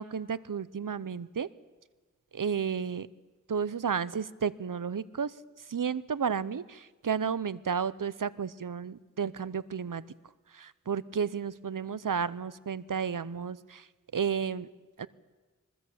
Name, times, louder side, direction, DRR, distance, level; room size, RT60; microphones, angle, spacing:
voice 1, 0.0-1.5 2.3-3.1 3.5-5.3 5.7-10.0 10.5-13.9 14.1-14.7 15.0-15.1, right 6 dB, 85° right, 17 dB, 0.8 m, -32 dB
23.5 x 20.5 x 8.6 m, 1.3 s
wide cardioid pair, 60°, 31 cm